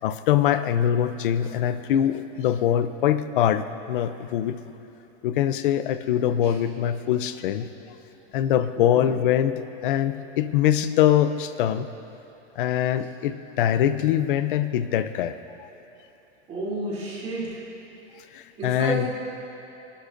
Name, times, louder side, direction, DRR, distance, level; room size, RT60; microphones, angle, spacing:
voice 1, 0.0-4.6 5.2-7.7 8.3-11.9 12.6-15.7 18.3-19.1, left 10 dB, 45° left, 12 dB, 0.5 m, -23 dB
voice 2, 8.7-9.2 16.5-17.6 18.6-19.3, right 1 dB, 20° right, -7 dB, 2.8 m, -31 dB
25.0 x 11.5 x 2.5 m, 2.9 s
supercardioid pair, 170°, 36 cm